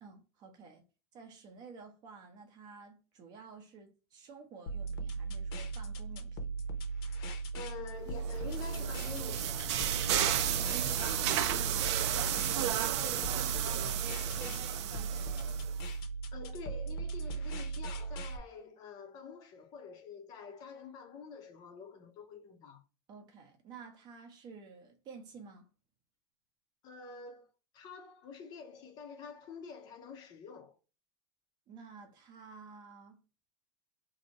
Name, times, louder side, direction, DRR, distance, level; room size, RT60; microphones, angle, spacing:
voice 1, 0.0-0.8 1.1-6.5 10.4-15.7 23.1-25.7 31.7-33.2, right 5 dB, 30° right, 0.7 m, -51 dB
sound 1, 4.7-18.4, right 4 dB, 60° left, 0.8 m, -38 dB
voice 2, 7.5-9.6 16.3-22.8 26.8-30.8, left 5 dB, 30° left, 0.6 m, -47 dB
sound 2, 8.2-15.8, right 10 dB, 80° right, 0.5 m, -33 dB
2.8 x 2.6 x 4.0 m
supercardioid pair, 175°, 15 cm